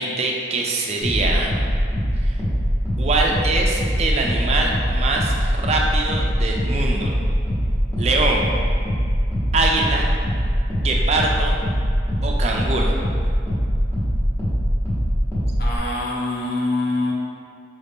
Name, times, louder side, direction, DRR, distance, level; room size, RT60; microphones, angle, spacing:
voice 1, 0.0-1.5 2.2-2.3 3.0-7.1 8.0-8.5 9.5-10.1 10.8-11.6 12.2-12.9, right 2 dB, 35° right, 0 dB, 0.4 m, -23 dB
sound 1, 1.0-15.8, equal, 15° left, 1.1 m, -22 dB
voice 2, 15.6-17.1, left 2 dB, 60° left, -3 dB, 0.7 m, -24 dB
4.8 x 2.6 x 3.5 m, 2.2 s
head